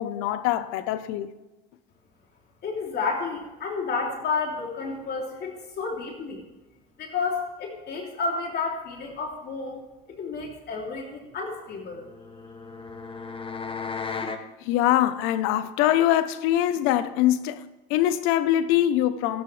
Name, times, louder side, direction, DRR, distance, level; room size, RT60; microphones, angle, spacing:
voice 1, 0.0-1.3 14.6-17.6 17.9-19.4, left 12 dB, 75° left, 1.1 m, -23 dB
voice 2, 2.6-6.4 7.0-9.8 10.1-12.1, left 4 dB, 50° left, 3.5 m, -31 dB
sound 1, 11.9-14.5, left 5 dB, 25° left, 1.7 m, -35 dB
27.5 x 10.5 x 3.5 m
supercardioid pair, 80°, 21 cm